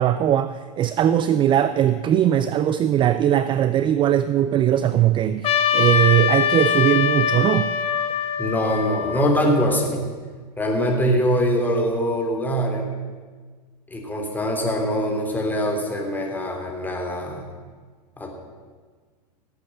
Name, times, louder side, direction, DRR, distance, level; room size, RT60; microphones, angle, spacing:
voice 1, 0.0-7.7, right 11 dB, 25° right, 13 dB, 0.5 m, -20 dB
Trumpet, 5.4-9.9, left 7 dB, 30° left, 1.2 m, -23 dB
voice 2, 8.4-10.1 10.6-12.9 13.9-17.5 18.2-18.3, equal, 10° left, 1 dB, 3.3 m, -23 dB
17.5 x 8.4 x 7.8 m, 1.5 s
hypercardioid pair, 100°, 21 cm